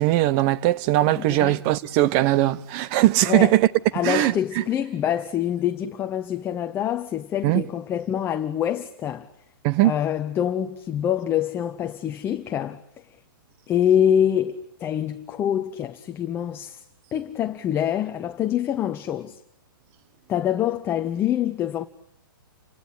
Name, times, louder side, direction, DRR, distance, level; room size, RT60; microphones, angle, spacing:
voice 1, 0.0-3.7 4.0-4.6 7.4-7.6 9.6-9.9, right 15 dB, 35° right, 1.0 m, -20 dB
voice 2, 1.2-1.6 3.3-3.5 3.9-9.3 9.8-12.8 13.7-16.8 17.1-19.4 20.3-21.9, left 10 dB, 20° left, 1.0 m, -25 dB
30.0 x 17.5 x 9.7 m
hypercardioid pair, 140°, 12 cm